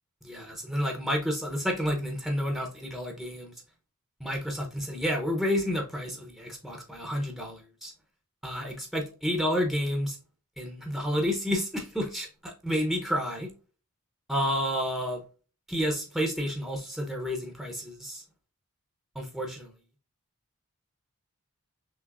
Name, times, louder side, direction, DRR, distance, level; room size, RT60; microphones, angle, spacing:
voice 1, 0.2-3.5 4.2-7.9 8.4-10.2 10.6-13.5 14.3-15.2 15.7-18.2 19.1-19.7, equal, ahead, 0.7 m, -30 dB
5.9 x 3.0 x 2.4 m
head